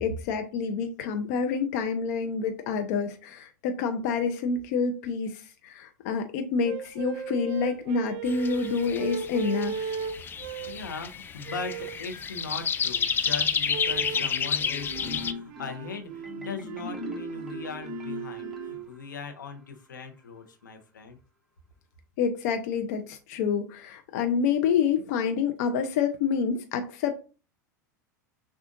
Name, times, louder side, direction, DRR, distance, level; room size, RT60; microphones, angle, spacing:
voice 1, 0.0-10.0 22.2-27.1, left 6 dB, 60° left, 6 dB, 0.6 m, -28 dB
sound 1, 6.6-10.9 11.4-12.1 13.7-14.3 14.9-18.9, right 7 dB, 55° right, 0.5 m, -37 dB
sound 2, 8.3-15.3, left 6 dB, 20° left, 0.4 m, -30 dB
voice 2, 10.7-21.2, left 4 dB, 90° left, 5 dB, 0.9 m, -39 dB
Marimba xylophone, 14.1-19.3, left 2 dB, ahead, 1.0 m, -40 dB
6.3 x 2.4 x 2.5 m, 0.34 s
hypercardioid pair, 95°, 10 cm